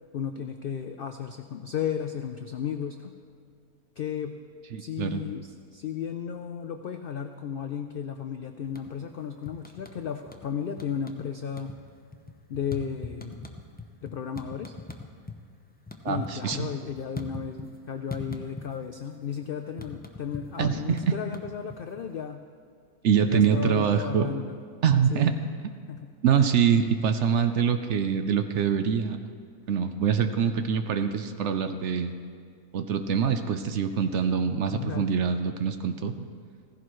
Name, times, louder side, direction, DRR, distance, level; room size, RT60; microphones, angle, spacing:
voice 1, 0.1-3.1 4.0-4.4 4.8-11.8 12.5-13.5 14.0-14.7 16.1-22.4 23.3-24.6 25.1-25.5 25.9-26.1 26.4-26.5 34.7-35.1, left 7 dB, 75° left, 7 dB, 0.5 m, -34 dB
voice 2, 4.7-5.2 16.0-16.7 20.6-21.1 23.0-24.3 24.8-25.3 26.2-29.2 29.7-32.1 32.7-36.1, right 7 dB, 65° right, 8 dB, 0.8 m, -24 dB
sound 1, 8.6-9.1 9.5-10.5 10.8-11.3 11.5-15.4 15.7-17.8 18.1-19.0 19.2-22.1, left 2 dB, 15° left, 0.4 m, -41 dB
15.5 x 15.5 x 3.1 m, 2.2 s
omnidirectional pair, 1.5 m